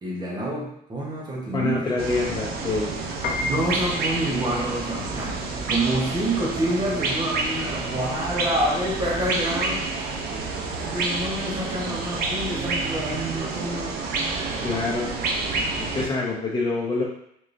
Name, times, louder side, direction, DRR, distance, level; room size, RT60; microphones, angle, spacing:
voice 1, 0.0-1.9 3.4-5.4 5.7-9.8 10.9-13.9, right 1 dB, 25° right, -3 dB, 1.1 m, -27 dB
voice 2, 1.5-2.9 14.6-15.2 15.8-17.0, left 3 dB, 25° left, -4 dB, 0.7 m, -26 dB
sound 1, 2.0-16.1, right 3 dB, 65° right, 0.6 m, -29 dB
Singing, 2.1-9.3, left 2 dB, 40° right, 1.4 m, -42 dB
Piano, 3.1-13.5, left 3 dB, 65° left, 0.5 m, -37 dB
3.7 x 3.0 x 2.6 m, 0.73 s
cardioid pair, 110°, 17 cm